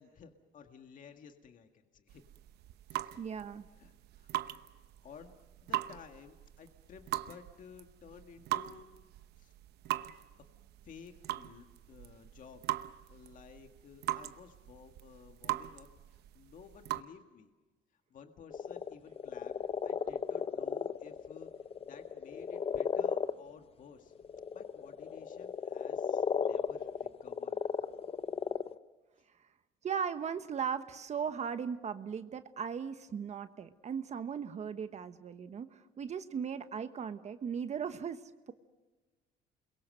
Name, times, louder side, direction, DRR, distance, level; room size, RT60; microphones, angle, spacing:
voice 1, 0.0-2.2 2.9-3.1 3.7-4.3 5.0-8.9 9.4-9.5 10.8-17.5 17.9-19.6 19.8-21.5 21.9-24.1 24.5-27.6, left 6 dB, 50° left, 6 dB, 1.8 m, -54 dB
sound 1, 2.1-17.0, right 16 dB, 75° right, 0.9 m, -41 dB
voice 2, 3.2-3.7 29.8-38.5, right 7 dB, 40° right, 10 dB, 1.2 m, -38 dB
sound 2, 18.5-23.3 24.1-28.8, left 6 dB, 35° left, 0.8 m, -35 dB
29.0 x 22.5 x 6.5 m, 1.2 s
cardioid pair, 110°, 17 cm